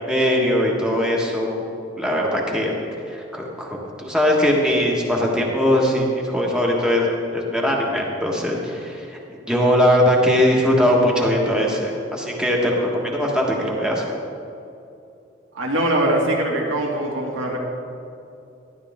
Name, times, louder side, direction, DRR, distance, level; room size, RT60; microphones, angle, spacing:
voice 1, 0.1-1.6 2.0-2.7 3.1-9.2 9.5-14.0, equal, 5° right, -2 dB, 1.5 m, -20 dB
voice 2, 15.5-17.6, right 1 dB, 90° right, -2 dB, 2.3 m, -22 dB
12.5 x 11.5 x 3.6 m, 2.7 s
head